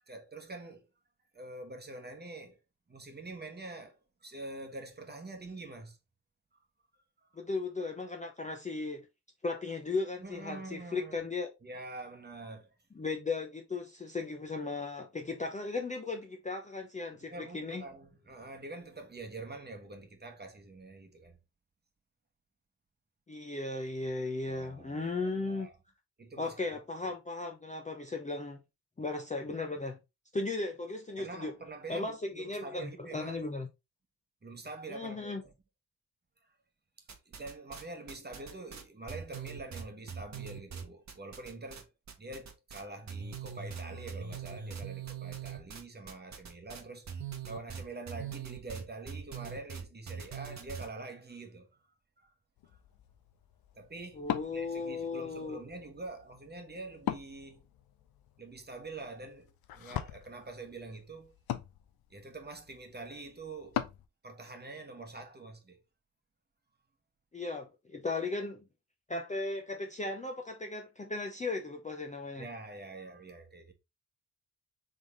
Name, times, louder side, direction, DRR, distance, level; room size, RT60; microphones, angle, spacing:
voice 1, 0.1-0.9 1.3-2.6 2.9-6.0 7.2-7.3 10.2-11.2 11.6-12.7 17.2-21.4 24.0-24.1 24.5-25.7 26.2-27.1 31.2-33.4 34.4-35.5 37.0-41.9 42.2-47.2 47.4-51.7 52.2-52.3 53.8-57.6 58.4-61.3 62.1-63.8 64.2-65.8 72.4-73.7, right 2 dB, 20° right, 1.2 m, -45 dB
voice 2, 7.4-9.0 9.4-11.5 13.0-17.8 23.3-25.7 26.4-28.6 29.0-30.0 30.3-31.6 31.9-33.7 34.9-35.4 54.2-55.6 67.3-68.6 69.1-72.5, left 3 dB, 15° left, 0.7 m, -36 dB
sound 1, 37.1-37.8 38.1-41.8 42.1-42.8 43.1-50.9, right 7 dB, 35° right, 1.2 m, -42 dB
Wood, 52.6-64.1, left 11 dB, 50° left, 0.7 m, -42 dB
3.6 x 3.5 x 3.7 m
hypercardioid pair, 40°, 46 cm